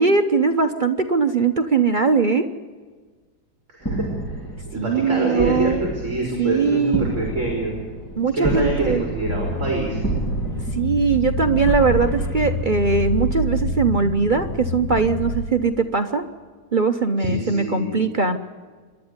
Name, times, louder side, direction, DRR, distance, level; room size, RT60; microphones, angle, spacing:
voice 1, 0.0-2.5 4.8-5.8 6.4-7.1 8.2-9.0 10.7-16.2 16.7-18.4, right 4 dB, 55° right, 5 dB, 0.5 m, -20 dB
voice 2, 3.7-4.0 4.7-7.8 8.3-10.0 17.2-17.9, right 2 dB, 35° right, 0 dB, 4.4 m, -25 dB
sound 1, 3.8-13.3, right 2 dB, 10° left, 2.6 m, -30 dB
sound 2, 9.2-15.4, left 2 dB, 65° left, 2.0 m, -27 dB
27.0 x 11.5 x 9.5 m, 1.5 s
omnidirectional pair, 2.2 m